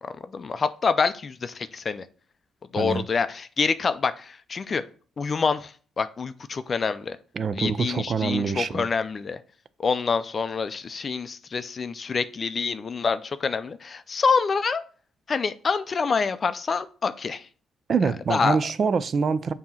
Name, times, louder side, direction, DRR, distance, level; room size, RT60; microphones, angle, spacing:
voice 1, 0.0-2.1 2.7-4.8 5.2-7.2 7.5-9.4 9.8-14.8 15.3-17.5 18.3-18.6, left 5 dB, 40° left, 0.4 m, -26 dB
voice 2, 7.4-8.9 17.9-19.5, right 5 dB, 45° right, 0.4 m, -25 dB
7.1 x 2.9 x 5.6 m
cardioid pair, 90°, 0 cm